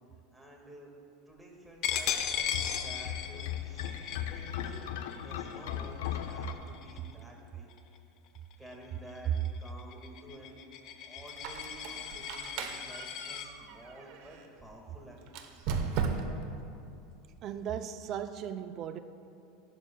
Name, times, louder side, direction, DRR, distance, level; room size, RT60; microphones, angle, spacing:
voice 1, 0.3-0.9 1.3-3.9 4.3-4.8 5.2-7.7 8.6-10.5 11.1-15.2 15.5-16.1, right 1 dB, 5° right, -1 dB, 1.9 m, -51 dB
Coin (dropping), 1.8-7.2 7.7-8.0 8.3-13.5, left 9 dB, 50° left, 0.7 m, -38 dB
sound 1, 1.9-6.5, left 10 dB, 85° left, 0.6 m, -38 dB
Squeak, 11.3-14.5 15.3-16.5, right 5 dB, 60° right, 0.9 m, -36 dB
voice 2, 17.4-19.0, right 9 dB, 40° right, 9 dB, 0.5 m, -37 dB
15.0 x 11.5 x 2.3 m, 2.6 s
supercardioid pair, 135°, 0 cm